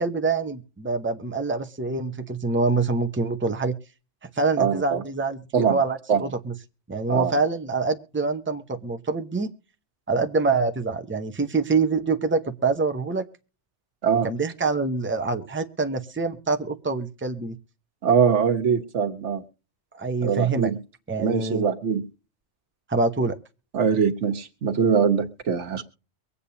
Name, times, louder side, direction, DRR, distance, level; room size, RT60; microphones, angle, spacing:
voice 1, 0.0-3.7 4.4-6.5 6.9-9.5 10.1-13.2 14.2-17.6 19.9-20.7 21.1-21.6 22.9-23.4, right 4 dB, 10° right, 7 dB, 0.8 m, -25 dB
voice 2, 4.6-5.0 5.5-5.8 6.1-6.2 7.1-7.4 14.0-14.3 18.0-19.4 20.2-20.8 21.2-22.0 23.7-25.8, right 6 dB, 90° right, 6 dB, 1.5 m, -22 dB
23.5 x 8.5 x 2.8 m, 0.36 s
omnidirectional pair, 1.2 m